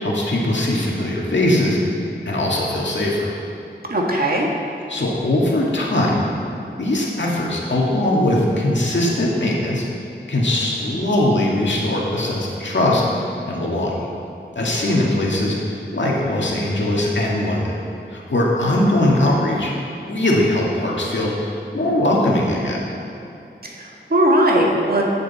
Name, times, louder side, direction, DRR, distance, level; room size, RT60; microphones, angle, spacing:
voice 1, 0.0-1.8 2.3-3.3 4.9-6.2 6.8-9.8 10.3-13.9 14.6-17.7 18.1-19.7 20.1-22.9, left 1 dB, 80° left, -3 dB, 2.0 m, -20 dB
voice 2, 3.9-4.5 23.6-25.0, right 1 dB, 55° right, -2 dB, 1.8 m, -18 dB
14.0 x 8.0 x 4.2 m, 2.7 s
wide cardioid pair, 75°, 19 cm